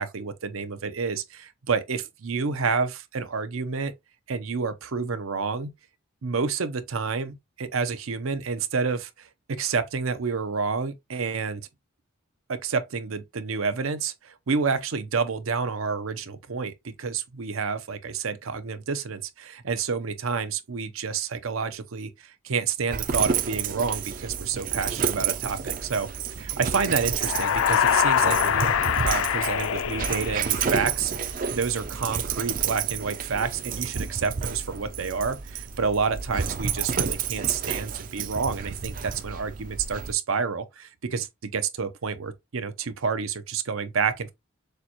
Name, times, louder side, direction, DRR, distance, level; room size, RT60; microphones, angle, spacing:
voice 1, 0.0-3.9 4.3-5.7 6.2-9.3 9.6-11.7 12.5-26.1 26.4-44.3, right 5 dB, 80° right, 0.7 m, -29 dB
Dog, 22.9-40.1, right 7 dB, 40° right, 0.4 m, -30 dB
sound 1, 27.1-31.0, left 9 dB, 70° left, 0.3 m, -24 dB
6.6 x 2.2 x 2.9 m
head